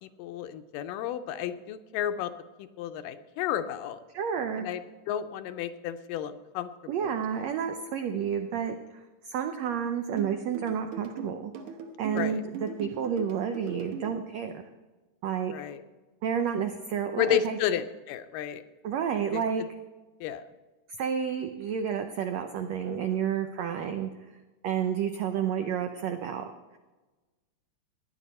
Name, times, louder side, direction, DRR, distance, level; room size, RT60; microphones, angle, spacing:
voice 1, 0.0-2.3 2.6-4.0 4.6-6.7 7.0-7.2 12.1-12.4 15.5-15.8 17.2-18.6 19.3-19.4 20.2-20.4, left 10 dB, 80° left, 10 dB, 2.2 m, -32 dB
voice 2, 4.1-4.7 6.9-9.0 9.3-11.5 12.0-14.5 15.2-15.5 16.2-17.6 18.8-19.6 21.0-24.1 24.6-26.4, right 8 dB, 90° right, 6 dB, 1.5 m, -30 dB
sound 1, 10.2-14.2, right 5 dB, 65° right, 2.3 m, -39 dB
17.0 x 10.5 x 4.2 m, 1.2 s
omnidirectional pair, 4.0 m